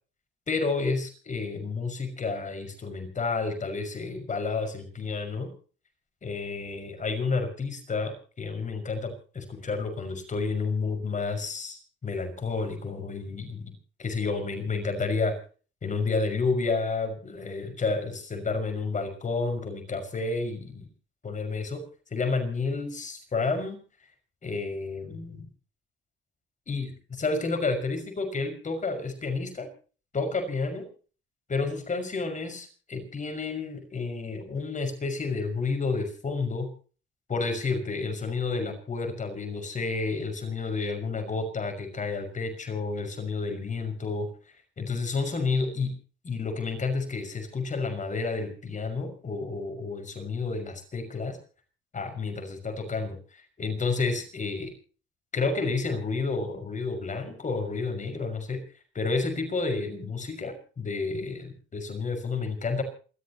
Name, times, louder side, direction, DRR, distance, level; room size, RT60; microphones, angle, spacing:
voice 1, 0.5-5.5 6.2-13.7 14.0-15.3 15.8-20.9 21.2-21.8 22.1-23.8 24.4-25.5 26.7-29.7 30.1-30.9 31.5-36.7 37.3-44.3 44.8-45.9 46.2-51.4 51.9-54.7 55.3-58.6 58.9-62.8, left 4 dB, 40° left, 6 dB, 5.9 m, -30 dB
28.0 x 14.0 x 3.0 m, 0.39 s
cardioid pair, 90°, 20 cm